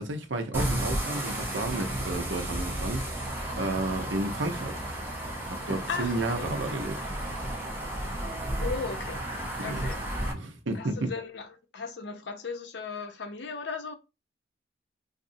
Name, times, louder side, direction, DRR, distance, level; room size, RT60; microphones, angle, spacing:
voice 1, 0.0-4.8 5.5-7.0 9.6-9.9 10.3-11.1, right 2 dB, 90° right, 0.8 m, -32 dB
sound 1, 0.5-10.3, right 1 dB, 10° right, 0.7 m, -33 dB
voice 2, 5.9-6.5 8.6-9.2 9.6-10.0 10.7-13.9, left 4 dB, 70° left, 0.6 m, -36 dB
4.1 x 2.6 x 2.6 m
head